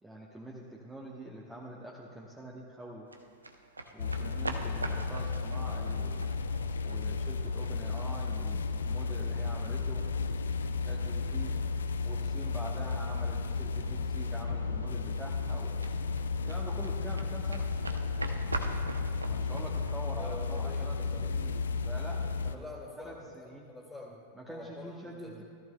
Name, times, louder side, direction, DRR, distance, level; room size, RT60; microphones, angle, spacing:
voice 1, 0.0-3.1 3.9-6.3 6.8-10.1 10.8-11.6 12.0-15.7 16.4-17.7 19.3-22.7 23.0-23.7 24.3-25.4, right 1 dB, 5° right, -3 dB, 1.1 m, -45 dB
sound 1, 3.1-21.0, right 2 dB, 80° right, 0.7 m, -44 dB
sound 2, 4.0-22.5, left 4 dB, 70° left, 0.5 m, -33 dB
voice 2, 20.2-21.3 22.5-25.4, left 1 dB, 10° left, -2 dB, 2.2 m, -46 dB
17.0 x 13.5 x 2.3 m, 2.3 s
figure-of-eight pair, 90°, 0 cm